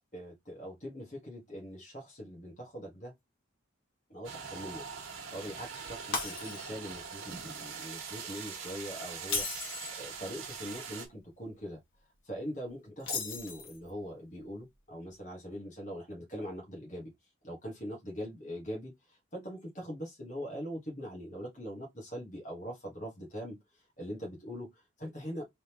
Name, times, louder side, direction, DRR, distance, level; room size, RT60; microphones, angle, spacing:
voice 1, 0.1-3.1 4.1-4.8 5.3-11.8 12.2-17.1 17.4-23.6 24.0-25.4, equal, 35° left, 1.6 m, -42 dB
sound 1, 4.2-11.1, right 6 dB, 80° right, 1.3 m, -42 dB
Shatter, 6.1-6.9 7.3-7.6 9.2-10.0 13.0-13.9, left 4 dB, 80° left, 1.4 m, -36 dB
3.9 x 3.5 x 3.0 m
head